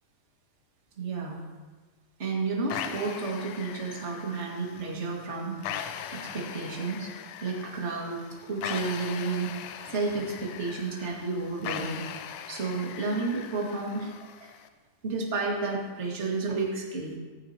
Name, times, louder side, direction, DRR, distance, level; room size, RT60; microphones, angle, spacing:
voice 1, 1.0-1.4 2.2-7.1 7.4-9.5 9.8-12.0 12.5-14.5 15.0-17.2, right 3 dB, 30° right, -2 dB, 1.5 m, -32 dB
sound 1, 2.7-14.7, left 9 dB, 80° left, 2.0 m, -40 dB
15.0 x 14.5 x 2.9 m, 1.4 s
omnidirectional pair, 4.1 m